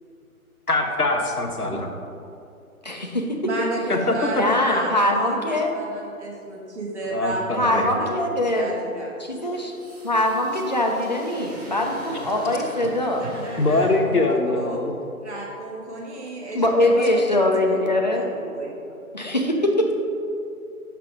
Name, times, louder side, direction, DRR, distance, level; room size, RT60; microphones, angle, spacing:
voice 1, 0.7-1.9 3.9-4.1 7.1-7.9 13.6-14.9, left 2 dB, 85° left, 2 dB, 1.1 m, -23 dB
voice 2, 2.8-3.4 4.4-5.7 7.5-8.7 9.2-9.7 10.0-13.2 16.5-18.3 19.1-19.9, left 1 dB, 30° left, 1 dB, 0.5 m, -22 dB
voice 3, 3.4-8.2 8.5-9.1 13.2-14.8 15.2-18.8, right 2 dB, 50° right, -3 dB, 1.7 m, -33 dB
sound 1, 9.4-14.3, right 1 dB, 25° right, 1.4 m, -40 dB
5.9 x 5.8 x 4.9 m, 2.6 s
figure-of-eight pair, 150°, 44 cm